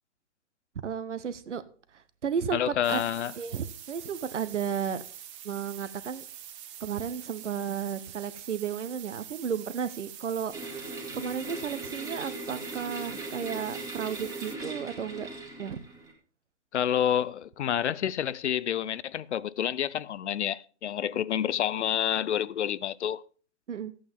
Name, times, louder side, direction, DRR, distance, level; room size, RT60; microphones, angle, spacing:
voice 1, 0.8-1.6 1.9-3.1 3.4-5.0 5.4-6.2 6.8-15.3 15.6-15.8 23.7-23.9, right 7 dB, 80° right, 1.1 m, -33 dB
voice 2, 2.5-3.3 16.7-23.2, left 10 dB, 70° left, 0.6 m, -28 dB
sound 1, 2.8-14.6, right 10 dB, 25° right, 0.9 m, -45 dB
sound 2, 10.5-16.1, right 2 dB, 10° right, 1.9 m, -39 dB
14.0 x 8.6 x 3.6 m
hypercardioid pair, 140°, 36 cm